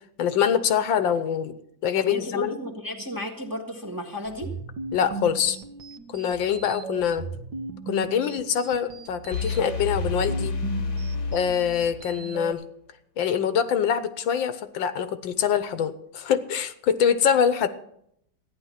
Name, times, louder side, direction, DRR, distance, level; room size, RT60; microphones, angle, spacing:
voice 1, 0.2-1.5 1.8-2.6 4.9-5.6 6.1-7.3 7.9-10.5 11.3-12.6 13.2-17.7, left 8 dB, 80° left, 12 dB, 1.6 m, -24 dB
voice 2, 1.9-4.5, equal, 10° right, 1 dB, 1.4 m, -33 dB
sound 1, 4.3-12.5, right 4 dB, 65° right, 1.6 m, -37 dB
sound 2, 9.3-12.2, left 4 dB, 45° left, 1.3 m, -30 dB
14.5 x 10.5 x 5.7 m, 0.71 s
omnidirectional pair, 2.1 m